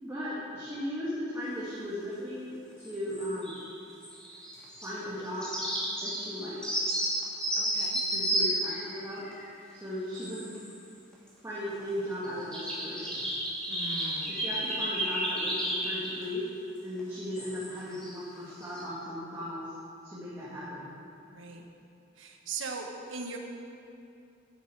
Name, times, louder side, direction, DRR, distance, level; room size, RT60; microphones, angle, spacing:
voice 1, 0.0-3.6 4.8-5.5 6.0-6.6 8.1-9.3 9.7-10.5 11.4-13.3 14.4-16.4 16.8-19.7 20.0-20.9, left 1 dB, 15° right, -10 dB, 2.3 m, -37 dB
sound 1, 2.8-3.7 4.0-4.9 5.2-9.5 10.2-10.8 11.1-11.3 11.7-11.8 12.2-16.2 17.0-17.1 17.4-18.2 18.5-18.8, right 1 dB, 5° left, 2.8 m, -32 dB
voice 2, 7.6-8.0 13.7-14.4 21.3-21.6 22.2-23.4, right 4 dB, 85° right, 3 dB, 1.3 m, -40 dB
12.0 x 10.5 x 4.8 m, 2.6 s
head